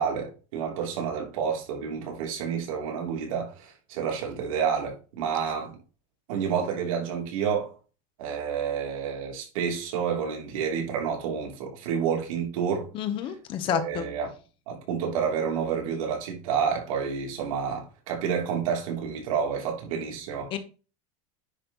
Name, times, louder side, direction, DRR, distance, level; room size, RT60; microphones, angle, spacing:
voice 1, 0.0-5.8 6.3-7.7 8.2-12.9 13.7-14.3 14.7-20.5, right 7 dB, 75° right, 3.1 m, -29 dB
voice 2, 12.9-14.0 20.5-20.6, left 10 dB, 30° left, 1.0 m, -29 dB
9.9 x 4.4 x 4.1 m
supercardioid pair, 175°, 18 cm